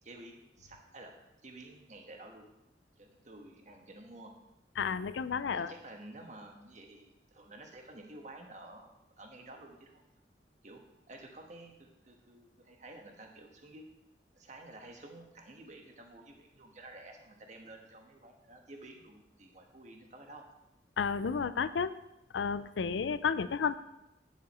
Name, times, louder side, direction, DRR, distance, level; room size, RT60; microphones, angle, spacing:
voice 1, 0.0-1.1 1.4-2.5 3.0-4.3 5.5-10.0 10.6-13.8 14.3-20.4, right 2 dB, 40° right, 2 dB, 1.3 m, -51 dB
voice 2, 4.8-5.7 21.0-21.9 22.3-23.8, left 6 dB, 85° left, 14 dB, 0.4 m, -32 dB
9.5 x 7.5 x 4.2 m, 0.91 s
head